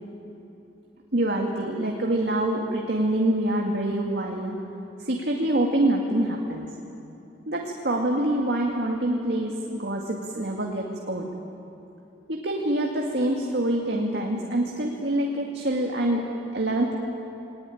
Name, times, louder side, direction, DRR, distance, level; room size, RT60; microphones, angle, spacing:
voice 1, 1.1-4.5 5.0-6.7 7.5-11.3 12.3-16.2 16.5-16.9, right 1 dB, 70° right, 0 dB, 2.1 m, -25 dB
21.0 x 19.0 x 10.0 m, 2.9 s
head